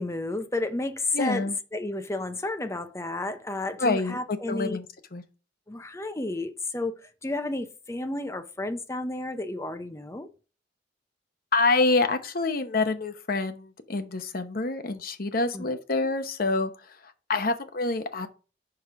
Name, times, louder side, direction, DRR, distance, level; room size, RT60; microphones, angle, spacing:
voice 1, 0.0-4.8 5.7-10.3 15.5-15.6, left 2 dB, 15° left, 0.6 m, -32 dB
voice 2, 1.1-1.6 3.8-5.2 11.5-18.3, left 3 dB, 50° left, 0.8 m, -27 dB
4.9 x 4.8 x 5.8 m
head